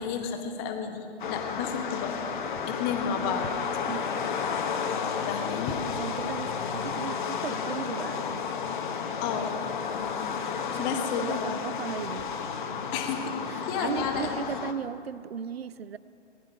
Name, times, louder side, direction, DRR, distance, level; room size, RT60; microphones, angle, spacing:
voice 1, 0.0-2.2 2.7-3.5 5.3-5.8 9.2-9.6 10.8-11.4 11.7-11.9 12.9-13.3 13.7-14.7, left 6 dB, 20° left, 5 dB, 1.1 m, -32 dB
sound 1, 1.2-14.7, left 6 dB, 45° left, 1.0 m, -32 dB
voice 2, 5.9-8.5 10.7-12.3 13.5-16.0, right 7 dB, 55° right, 17 dB, 0.6 m, -36 dB
19.5 x 11.0 x 5.5 m, 2.7 s
figure-of-eight pair, 130°, 36 cm